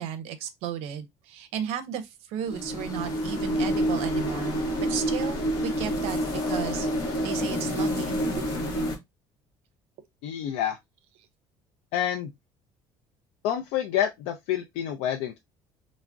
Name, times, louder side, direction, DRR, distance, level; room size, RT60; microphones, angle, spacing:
voice 1, 0.0-6.2 6.5-6.9 7.2-8.1, right 9 dB, 75° right, 0.5 m, -34 dB
sound 1, 2.4-9.0, equal, 40° left, 0.8 m, -28 dB
voice 2, 10.2-10.8 11.9-12.3 13.4-15.4, left 10 dB, 80° left, 0.4 m, -28 dB
3.4 x 2.0 x 2.4 m
cardioid pair, 180°, 11 cm